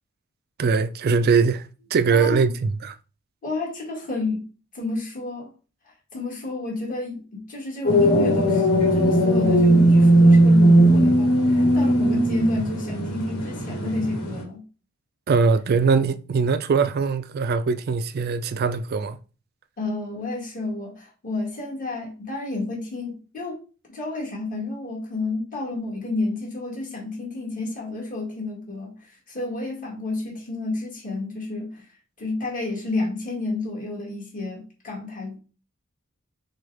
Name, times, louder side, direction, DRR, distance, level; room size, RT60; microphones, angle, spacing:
voice 1, 0.6-2.9 15.3-19.2, right 5 dB, 45° right, 0.4 m, -21 dB
voice 2, 2.1-2.5 3.4-4.4 4.7-5.5 6.1-14.6 19.8-23.6 23.9-31.9 32.2-35.4, left 2 dB, 40° left, 2.1 m, -30 dB
sound 1, 7.8-14.4, right 1 dB, 85° left, 1.4 m, -18 dB
6.2 x 2.4 x 3.4 m
head